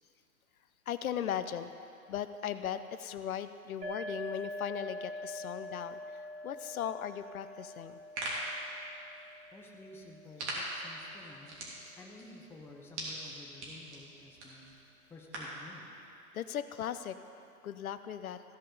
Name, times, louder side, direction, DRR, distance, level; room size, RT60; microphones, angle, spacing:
voice 1, 0.9-1.7 2.1-8.0 16.3-17.2 17.6-18.4, left 9 dB, 70° left, 11 dB, 0.7 m, -38 dB
sound 1, 3.8-11.3, equal, 15° right, 1.8 m, -45 dB
sound 2, 7.8-15.6, right 1 dB, 50° right, 3.2 m, -43 dB
voice 2, 9.5-11.5 12.0-14.7 15.1-15.9, left 2 dB, 5° left, 0 dB, 0.7 m, -52 dB
15.5 x 5.5 x 6.6 m, 2.6 s
hypercardioid pair, 125°, 44 cm